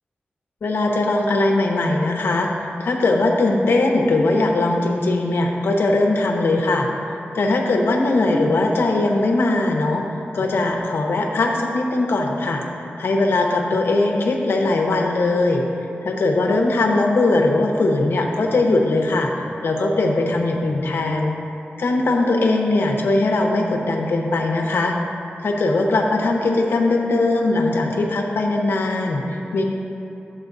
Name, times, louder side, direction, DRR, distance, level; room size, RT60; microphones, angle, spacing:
voice 1, 0.6-12.6 13.0-15.6 16.0-21.4 21.8-24.9 25.4-29.6, left 2 dB, 90° left, 1 dB, 0.9 m, -20 dB
12.0 x 7.8 x 2.6 m, 2.9 s
wide cardioid pair, 120°, 4 cm